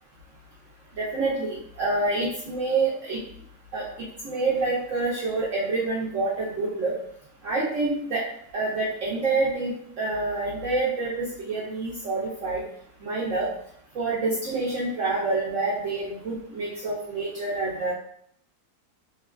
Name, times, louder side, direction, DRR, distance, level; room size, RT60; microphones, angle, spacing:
voice 1, 1.0-3.2 3.7-3.9 4.2-6.9 7.4-8.2 8.5-12.6 13.0-13.5 13.9-17.9, right 3 dB, 65° right, -6 dB, 0.9 m, -27 dB
2.9 x 2.2 x 2.3 m, 0.66 s
omnidirectional pair, 1.6 m